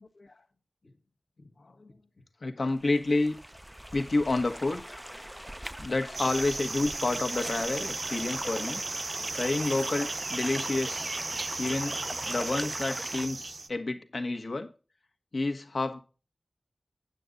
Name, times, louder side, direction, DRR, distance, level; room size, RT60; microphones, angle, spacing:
voice 1, 2.4-3.3 3.9-5.0 5.8-8.8 9.3-11.1 11.6-12.0 12.3-14.7 15.3-16.0, left 2 dB, 65° left, 5 dB, 1.4 m, -29 dB
sound 1, 2.6-13.3, equal, 5° right, 0.4 m, -40 dB
sound 2, 6.1-13.7, right 3 dB, 65° right, 0.8 m, -35 dB
9.1 x 8.3 x 3.8 m, 0.33 s
wide cardioid pair, 75°, 0 cm